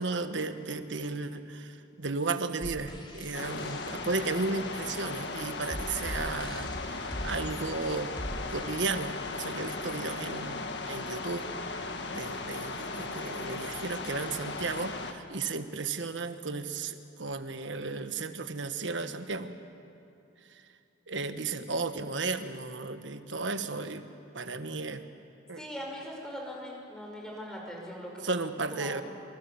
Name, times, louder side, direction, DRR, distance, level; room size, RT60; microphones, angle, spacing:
voice 1, 0.0-8.1 8.5-11.5 12.1-19.5 21.1-24.0 24.3-25.0 25.5-25.6 28.2-29.0, right 3 dB, 75° right, 9 dB, 1.4 m, -34 dB
sound 1, 2.6-9.6, equal, 25° left, 2.5 m, -42 dB
sound 2, 3.3-15.1, left 3 dB, 65° left, 1.7 m, -37 dB
voice 2, 25.6-28.4 28.7-29.0, equal, 5° left, -1 dB, 5.5 m, -41 dB
28.0 x 26.0 x 7.1 m, 2.7 s
head